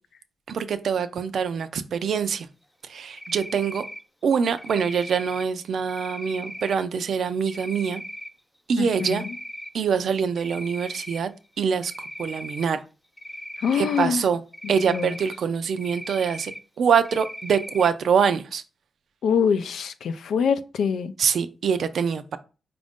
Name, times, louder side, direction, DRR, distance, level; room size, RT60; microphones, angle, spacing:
voice 1, 0.5-2.5 2.9-3.8 4.2-8.0 8.7-9.2 9.7-11.3 11.6-11.9 12.2-12.8 13.7-14.4 14.7-16.5 16.8-18.6 21.2-22.4, right 6 dB, 60° right, 0.4 m, -24 dB
Cricket, 3.1-4.0 4.6-5.4 5.9-6.7 7.5-8.3 8.7-9.7 10.1-11.2 11.8-12.6 13.2-14.0 14.5-15.4 15.8-16.6 17.0-17.9, equal, 5° left, 0.3 m, -38 dB
voice 2, 8.8-9.3 13.6-14.3 14.6-15.1 19.2-21.1, left 7 dB, 85° left, 0.4 m, -25 dB
5.1 x 2.5 x 3.5 m
wide cardioid pair, 180°, 0 cm